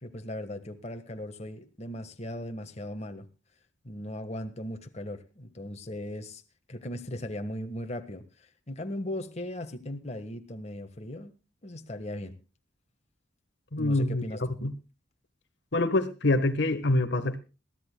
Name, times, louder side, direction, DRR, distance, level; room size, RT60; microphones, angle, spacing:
voice 1, 0.0-3.3 3.8-6.4 6.7-11.3 11.6-12.4 13.8-14.6, left 1 dB, 35° left, 1.5 m, -38 dB
voice 2, 13.7-14.2 14.6-14.7 15.7-17.4, left 2 dB, 60° left, 1.3 m, -25 dB
22.0 x 15.5 x 2.2 m
head